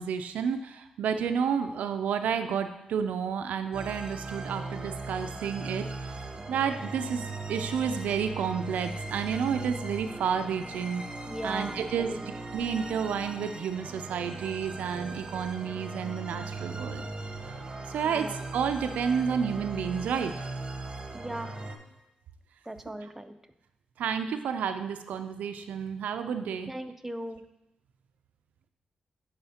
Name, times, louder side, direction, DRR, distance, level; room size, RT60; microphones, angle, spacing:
voice 1, 0.0-5.9 6.5-11.0 11.4-12.1 12.5-17.0 17.9-20.3 23.0-23.1 24.0-26.7, right 7 dB, 85° right, 8 dB, 0.4 m, -30 dB
sound 1, 3.7-21.8, right 3 dB, 35° right, 0.9 m, -38 dB
voice 2, 11.3-12.4 18.0-18.4 21.1-21.6 22.7-23.3 26.7-27.4, right 1 dB, 10° right, 8 dB, 0.5 m, -38 dB
10.5 x 4.1 x 2.8 m, 0.88 s
cardioid pair, 60°, 3 cm